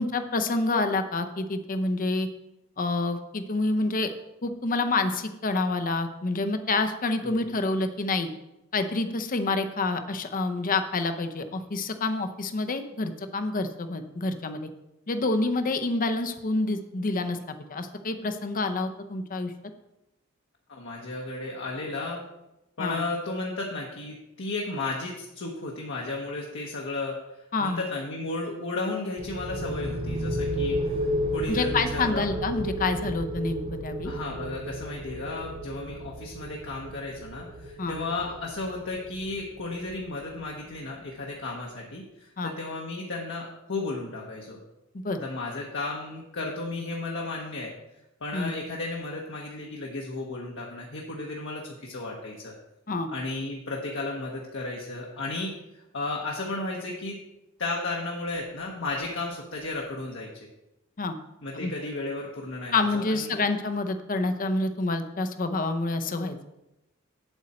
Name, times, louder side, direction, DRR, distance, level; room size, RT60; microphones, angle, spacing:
voice 1, 0.0-2.3 2.8-4.1 4.4-8.3 8.7-14.7 15.1-19.5 22.8-23.0 27.5-27.8 31.5-34.1 37.8-38.0 42.4-42.5 44.9-45.2 48.3-48.5 52.9-53.1 61.0-61.2 61.5-61.7 62.7-66.4, left 3 dB, 40° left, 8 dB, 0.7 m, -28 dB
voice 2, 20.7-22.2 22.8-32.3 34.0-44.6 45.2-47.7 48.2-52.5 53.1-55.5 55.9-57.2 57.6-60.5 61.4-63.3, left 2 dB, 60° left, -2 dB, 1.1 m, -34 dB
sound 1, 29.2-40.7, equal, 30° right, 0.6 m, -33 dB
8.1 x 7.7 x 4.3 m, 0.91 s
head